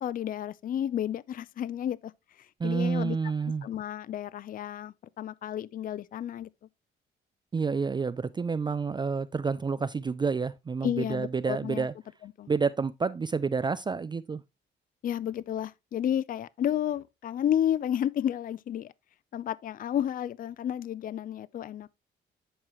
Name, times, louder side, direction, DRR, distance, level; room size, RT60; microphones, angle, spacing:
voice 1, 0.0-2.1 2.4-3.2 3.6-6.5 10.8-11.9 12.2-12.5 15.0-18.9 19.3-21.9, left 10 dB, 45° left, 0.4 m, -31 dB
voice 2, 2.6-3.7 7.5-11.9 12.5-14.4, right 5 dB, 25° right, 0.4 m, -29 dB
11.0 x 4.8 x 3.0 m
cardioid pair, 90°, 20 cm